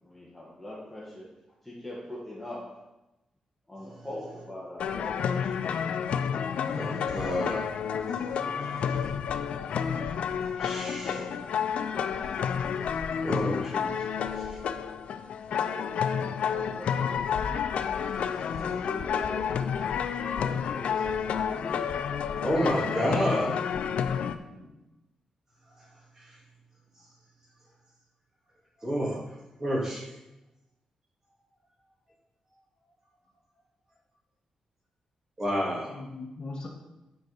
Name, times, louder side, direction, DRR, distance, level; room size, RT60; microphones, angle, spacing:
voice 1, 0.0-2.8 3.7-5.7 10.6-11.4 15.5-16.0 16.5-17.4 18.5-21.8, left 1 dB, 5° left, -6 dB, 1.5 m, -42 dB
sound 1, 4.8-24.4, left 7 dB, 85° left, 0.4 m, -30 dB
voice 2, 6.7-7.7 10.6-11.2 13.2-14.6 18.3-18.5 22.4-23.6 26.2-26.3 28.8-29.2 29.6-30.0 35.4-35.9, equal, 25° right, -4 dB, 2.4 m, -30 dB
voice 3, 24.2-24.8 35.9-36.7, left 3 dB, 40° left, -1 dB, 1.5 m, -41 dB
9.8 x 4.7 x 5.4 m, 1.0 s
wide cardioid pair, 140°, 2 cm